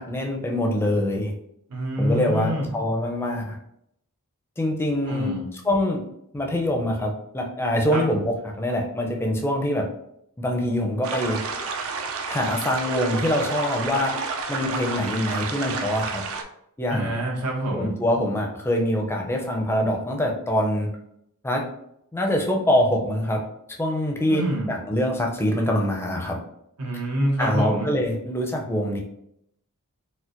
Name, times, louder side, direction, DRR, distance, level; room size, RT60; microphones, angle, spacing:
voice 1, 0.0-1.3 2.0-3.6 4.6-6.0 6.3-9.9 10.4-11.4 12.3-14.1 14.5-16.2 16.8-17.1 17.7-20.9 21.4-21.6 22.1-23.4 23.8-26.4 27.4-29.0, left 1 dB, 10° left, 1 dB, 0.4 m, -24 dB
voice 2, 1.7-2.7 5.1-5.4 7.9-8.0 16.9-17.9 24.3-24.7 26.8-27.9, right 1 dB, 85° right, -1 dB, 0.9 m, -26 dB
sound 1, 11.0-16.4, right 4 dB, 65° right, 0.4 m, -30 dB
4.2 x 2.1 x 2.5 m, 0.75 s
head